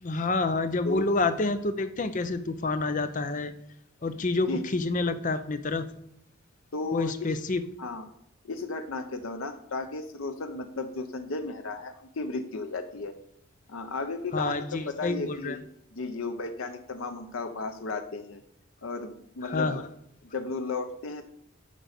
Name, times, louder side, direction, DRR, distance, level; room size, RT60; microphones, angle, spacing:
voice 1, 0.0-3.5 4.0-5.9 6.9-7.6 14.3-15.6 19.4-19.8, left 3 dB, 40° left, 11 dB, 0.6 m, -28 dB
voice 2, 6.7-7.3 7.8-8.1 8.4-13.2 13.7-15.6 15.9-18.4 18.8-19.8 20.2-21.2, left 3 dB, 85° left, 7 dB, 0.7 m, -34 dB
9.2 x 5.1 x 6.6 m, 0.75 s
head